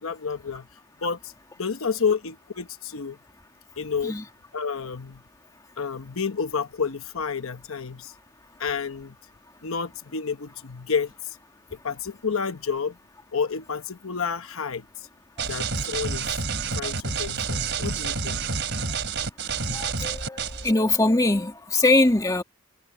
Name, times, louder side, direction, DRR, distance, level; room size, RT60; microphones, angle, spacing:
voice 1, 0.0-0.7 1.0-1.3 1.6-3.2 3.8-4.2 4.5-5.2 5.8-8.1 8.6-9.1 9.6-11.4 11.7-13.0 13.3-14.8 15.4-16.5 16.7-18.4 19.6-19.8, left 5 dB, 75° left, 1.0 m, -30 dB
sound 1, 15.4-20.7, right 5 dB, 55° right, 4.4 m, -29 dB
voice 2, 19.7-22.4, left 2 dB, 15° left, 1.8 m, -22 dB
head